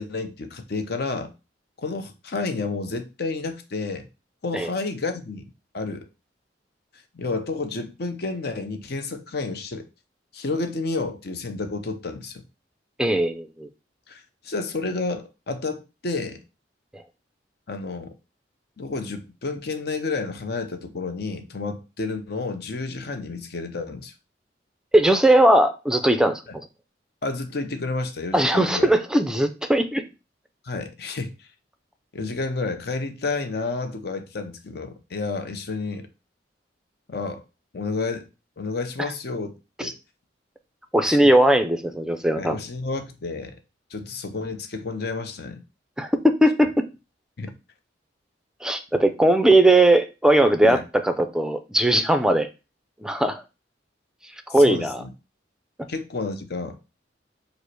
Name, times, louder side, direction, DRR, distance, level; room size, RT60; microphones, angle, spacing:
voice 1, 0.0-1.3 1.8-4.1 4.4-6.1 7.1-9.9 10.3-12.4 14.1-16.4 17.7-18.1 18.8-24.1 27.2-28.9 30.6-31.5 32.1-36.1 37.1-37.4 37.7-38.3 38.6-39.9 41.0-41.2 42.4-43.6 43.9-45.6 47.4-47.5 50.7-50.8 54.5-55.1 55.9-56.8, left 3 dB, 60° left, 0.7 m, -30 dB
voice 2, 13.0-13.7 24.9-26.4 28.3-30.0 39.8-39.9 40.9-42.6 46.0-46.9 48.6-52.5 53.0-53.4 54.5-55.0, right 1 dB, 5° right, 0.4 m, -19 dB
5.2 x 2.1 x 4.5 m
head